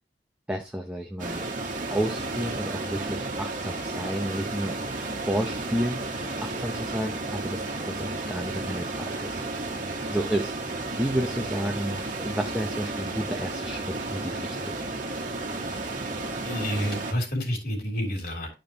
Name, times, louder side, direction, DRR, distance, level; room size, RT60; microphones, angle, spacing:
voice 1, 0.5-1.5 1.9-4.7 5.2-6.1 6.4-9.6 10.1-10.6 11.0-14.8, right 1 dB, 5° right, 2 dB, 0.8 m, -31 dB
sound 1, 1.2-17.1, right 2 dB, 45° right, 1.6 m, -33 dB
voice 2, 16.4-18.5, equal, 60° left, 1 dB, 3.3 m, -29 dB
11.5 x 5.2 x 2.9 m, 0.27 s
head